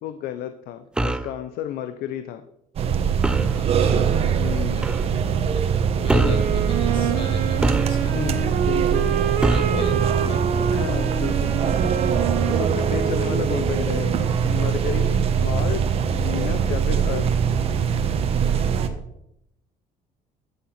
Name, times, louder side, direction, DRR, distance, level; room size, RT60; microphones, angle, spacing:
voice 1, 0.0-2.4 4.4-4.9 6.1-6.7 6.9-7.3 8.1-9.1 9.7-9.9 10.7-11.5 12.5-14.2 14.4-17.3, left 10 dB, 75° left, 10 dB, 0.8 m, -32 dB
sound 1, 1.0-1.3 3.2-3.6 4.8-5.0 6.1-6.5 7.6-8.3 9.4-9.8, right 2 dB, 5° right, 0.4 m, -24 dB
sound 2, 2.8-18.9, right 7 dB, 40° right, 1.2 m, -22 dB
voice 2, 3.5-5.3 6.0-8.4 9.4-10.5 10.9-11.1, left 3 dB, 35° left, 4 dB, 2.6 m, -42 dB
sound 3, 6.1-14.0, right 8 dB, 65° right, 1.8 m, -27 dB
13.0 x 8.6 x 5.8 m, 0.81 s
cardioid pair, 170°, 16 cm